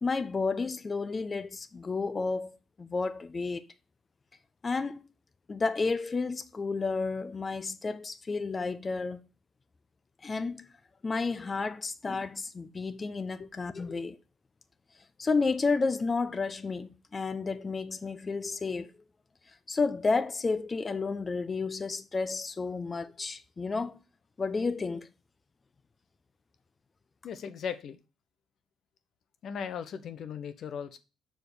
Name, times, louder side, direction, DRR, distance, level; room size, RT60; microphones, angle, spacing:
voice 1, 0.0-2.5 2.8-3.6 4.6-5.0 5.5-9.2 10.2-10.7 11.0-14.2 15.2-18.9 19.7-24.0 24.4-25.1, left 4 dB, 30° left, 0.9 m, -31 dB
voice 2, 27.2-28.0 29.4-31.0, left 7 dB, 65° left, 1.0 m, -37 dB
6.4 x 5.0 x 6.8 m
cardioid pair, 80°, 0 cm